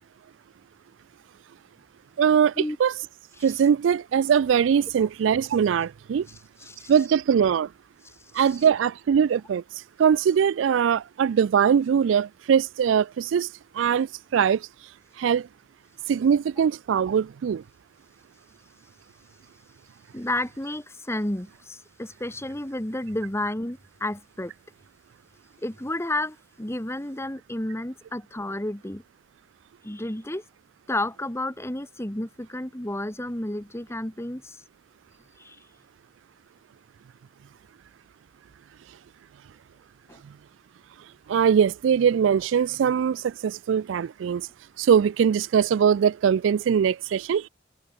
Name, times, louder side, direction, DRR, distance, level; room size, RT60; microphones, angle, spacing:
voice 1, 2.2-2.5 2.8-2.9 3.4-6.3 6.9-7.7 8.3-9.6 10.0-13.5 13.7-14.7 15.2-15.5 16.1-17.6 41.3-44.5 44.8-47.5, right 7 dB, 80° right, 0.3 m, -21 dB
voice 2, 6.6-6.9 8.3-8.5 20.1-24.5 25.6-29.0 29.8-30.4 30.9-34.6 35.4-35.6 40.1-40.2, left 1 dB, 15° left, 1.6 m, -31 dB
head